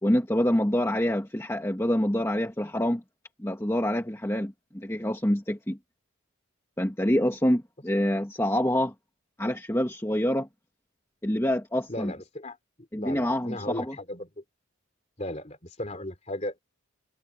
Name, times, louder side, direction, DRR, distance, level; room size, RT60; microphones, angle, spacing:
voice 1, 0.0-3.0 3.4-5.8 6.8-8.9 9.4-10.5 11.2-12.1 12.9-14.0, equal, 10° left, 1.6 m, -26 dB
voice 2, 11.9-12.6 13.0-14.3 15.2-16.6, left 1 dB, 30° left, 2.9 m, -36 dB
head